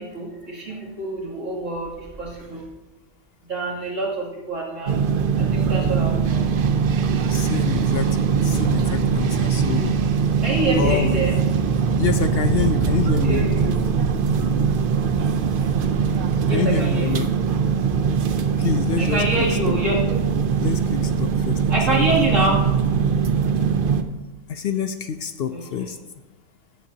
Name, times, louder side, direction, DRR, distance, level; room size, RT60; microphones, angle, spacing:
voice 1, 0.0-2.6 3.5-5.1 5.4-6.4 10.4-11.4 13.2-13.9 16.4-17.2 19.0-20.2 21.7-22.6 25.5-25.9, right 2 dB, 80° right, -6 dB, 3.0 m, -26 dB
sound 1, 4.9-24.0, right 6 dB, 55° right, 0.7 m, -21 dB
voice 2, 7.3-8.1 8.4-9.9 10.8-11.2 12.0-13.5 16.5-17.3 18.6-19.8 20.6-22.4 24.5-26.0, left 7 dB, 65° left, 9 dB, 0.7 m, -27 dB
15.0 x 8.4 x 2.8 m, 1.1 s
omnidirectional pair, 1.3 m